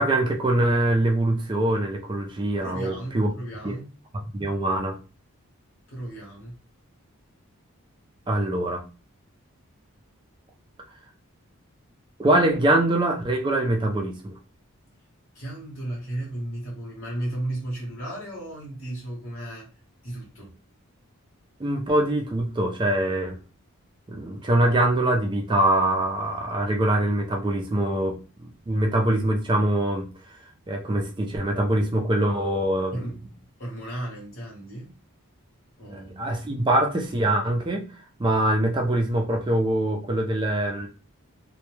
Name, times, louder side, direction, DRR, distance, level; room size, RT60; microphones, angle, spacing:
voice 1, 0.0-3.3 3.6-3.8 4.1-5.0 8.3-8.8 12.2-14.3 21.6-23.4 24.1-30.1 30.7-33.1 35.9-37.8 38.2-40.9, right 1 dB, 20° right, 2 dB, 0.3 m, -23 dB
voice 2, 2.6-3.9 5.9-6.6 15.3-19.7 20.0-20.5 32.9-33.2 33.6-34.9 35.8-36.2, right 1 dB, 60° left, -4 dB, 1.0 m, -34 dB
2.1 x 2.1 x 3.0 m, 0.33 s
head